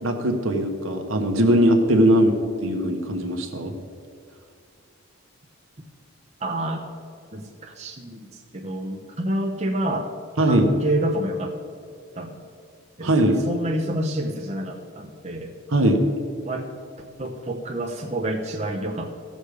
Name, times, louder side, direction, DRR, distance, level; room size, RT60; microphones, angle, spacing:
voice 1, 0.0-3.7 10.4-10.7 13.0-13.5 15.7-16.0, right 1 dB, 65° right, 4 dB, 1.3 m, -20 dB
voice 2, 6.4-6.8 7.3-8.2 8.5-10.1 10.5-11.6 12.2-12.4 13.0-15.5 16.4-16.7 17.2-19.1, right 1 dB, 30° right, 0 dB, 0.9 m, -28 dB
16.0 x 6.6 x 5.1 m, 2.3 s
head